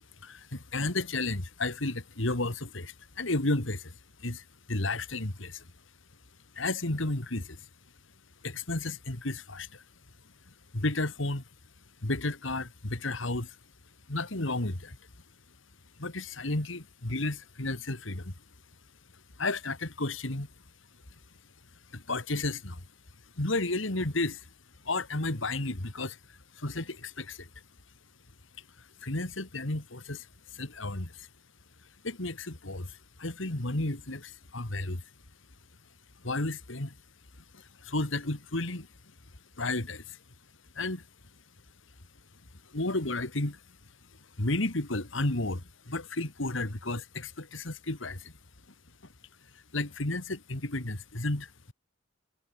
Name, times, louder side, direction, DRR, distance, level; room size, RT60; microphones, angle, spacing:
voice 1, 0.2-5.7 6.5-7.7 8.4-9.8 10.5-11.4 12.0-13.6 14.1-15.0 16.0-18.3 19.4-20.5 21.9-22.8 23.4-24.5 24.8-27.5 28.6-30.3 30.5-31.3 32.0-35.0 36.2-37.0 37.5-38.9 39.6-40.2 40.7-41.0 42.6-43.6 44.4-48.3 49.5-51.7, left 2 dB, 70° left, 2.6 m, -33 dB
head